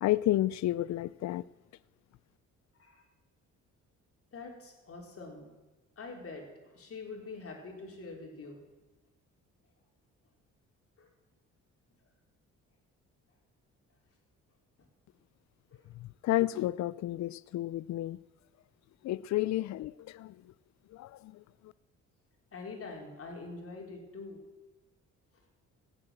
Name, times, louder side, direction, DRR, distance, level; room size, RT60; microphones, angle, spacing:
voice 1, 0.0-1.4 16.2-18.2 19.0-20.4 20.9-21.4, left 15 dB, 65° left, 20 dB, 0.5 m, -31 dB
voice 2, 4.3-5.5 6.0-8.6 11.0-11.1 15.7-15.9 22.5-24.4, left 3 dB, 50° left, 1 dB, 4.3 m, -45 dB
17.0 x 8.6 x 7.8 m, 1.2 s
cardioid pair, 90°, 30 cm